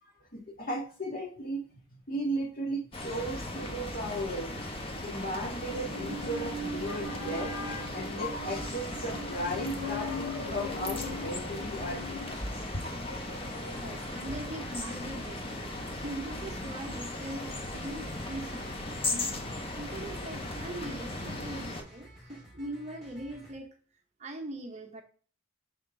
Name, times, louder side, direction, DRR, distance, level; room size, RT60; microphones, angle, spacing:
voice 1, 0.0-1.6 2.1-4.5 4.9-12.5 12.8-13.9, equal, 40° left, 1.8 m, -36 dB
sound 1, 2.9-21.8, left 2 dB, 25° left, 0.9 m, -37 dB
Musical instrument, 5.4-12.3, left 1 dB, 70° right, 0.7 m, -41 dB
sound 2, 8.5-23.5, equal, ahead, 3.0 m, -54 dB
voice 2, 13.8-19.3 19.8-23.7 24.2-25.0, right 1 dB, 35° right, 0.7 m, -41 dB
5.9 x 5.5 x 3.7 m
head